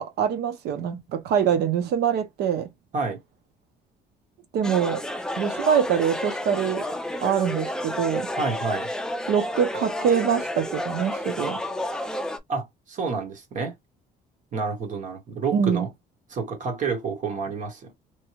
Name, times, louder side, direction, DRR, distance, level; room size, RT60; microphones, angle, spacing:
voice 1, 0.0-2.7 4.5-5.0 5.4-6.8 7.2-8.3 9.3-11.6 15.5-15.8, right 8 dB, 75° right, 0.8 m, -24 dB
sound 1, 4.6-12.4, left 1 dB, 5° left, 0.5 m, -31 dB
voice 2, 8.4-8.9 12.5-13.7 14.5-15.9 16.3-17.9, right 4 dB, 50° right, 1.2 m, -29 dB
3.1 x 2.3 x 3.0 m
cardioid pair, 110°, 17 cm